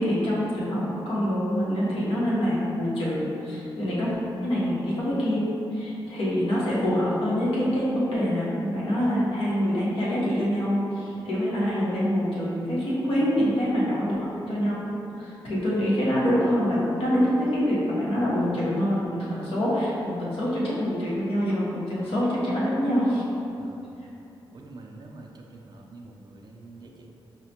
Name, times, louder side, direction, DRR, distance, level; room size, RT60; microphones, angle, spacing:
voice 1, 0.0-4.1 4.4-5.5 5.7-14.2 14.5-14.9 15.2-23.3, equal, 85° left, -8 dB, 1.1 m, -25 dB
voice 2, 24.5-27.1, right 2 dB, 50° right, 1 dB, 0.4 m, -46 dB
5.6 x 2.1 x 2.8 m, 2.8 s
wide cardioid pair, 100°, 10 cm